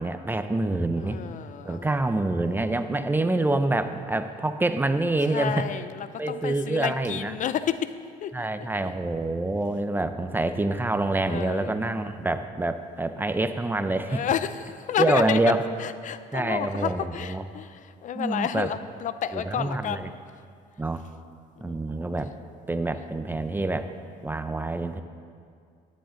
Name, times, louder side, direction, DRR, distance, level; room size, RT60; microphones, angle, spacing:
voice 1, 0.0-1.2 1.6-5.7 6.2-7.3 8.3-14.2 15.0-15.6 16.3-17.4 18.1-18.7 19.3-20.1 20.8-21.0 21.6-22.3 22.7-23.9 24.2-25.0, right 2 dB, 10° right, 9 dB, 0.6 m, -26 dB
voice 2, 1.0-1.9 3.2-3.4 5.3-7.9 8.2-8.5 8.8-8.9 11.2-11.8 14.1-15.4 15.8-20.2 21.6-22.1, left 9 dB, 50° left, 13 dB, 0.4 m, -31 dB
13.5 x 10.5 x 3.8 m, 2.2 s
cardioid pair, 110°, 17 cm